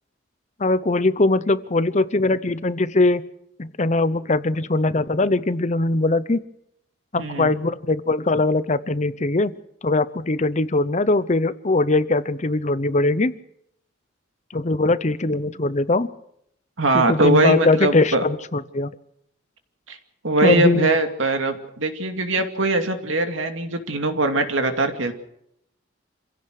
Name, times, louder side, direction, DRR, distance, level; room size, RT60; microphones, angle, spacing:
voice 1, 0.6-3.3 3.6-6.4 7.1-9.6 9.8-13.3 14.5-16.1 16.9-18.9 20.4-20.9, left 2 dB, 35° left, 14 dB, 0.8 m, -21 dB
voice 2, 7.2-7.5 16.8-18.2 19.9-20.0 20.2-25.1, right 2 dB, 80° right, 6 dB, 2.5 m, -21 dB
27.0 x 16.5 x 6.6 m, 0.75 s
head